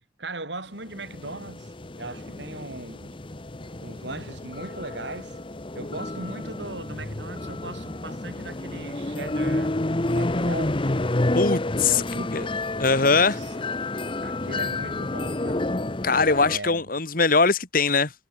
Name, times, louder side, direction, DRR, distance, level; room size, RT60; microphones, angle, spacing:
voice 1, 0.0-3.2 3.6-5.4 5.7-11.4 11.9-12.6 13.1-13.6 14.2-15.7 16.5-16.8, right 2 dB, 70° right, 6.1 m, -39 dB
sound 1, 0.9-16.6, left 2 dB, 25° left, 0.9 m, -29 dB
voice 2, 11.4-12.0 12.3-12.4 12.8-13.4 16.0-18.1, left 4 dB, 50° left, 1.8 m, -21 dB
head